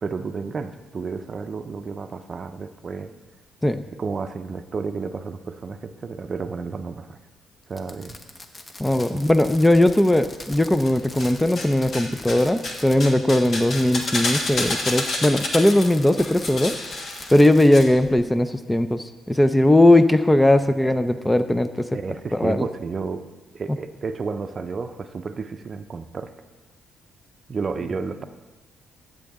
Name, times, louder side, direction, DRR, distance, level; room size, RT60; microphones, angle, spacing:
voice 1, 0.0-3.1 4.0-7.2 7.7-8.2 9.1-9.2 21.9-23.3 23.5-26.3 27.5-28.2, right 4 dB, 40° right, 9 dB, 0.6 m, -31 dB
Fireworks, 7.7-13.1 13.4-17.9, left 2 dB, 25° left, 1.0 m, -41 dB
voice 2, 8.8-16.7 17.3-22.0 22.3-22.6, left 1 dB, 10° left, 10 dB, 0.5 m, -19 dB
sound 1, 10.8-11.7 11.9-17.8 18.0-18.1, left 2 dB, 55° left, 1.5 m, -29 dB
13.0 x 8.0 x 3.6 m, 1.2 s
cardioid pair, 90°, 0 cm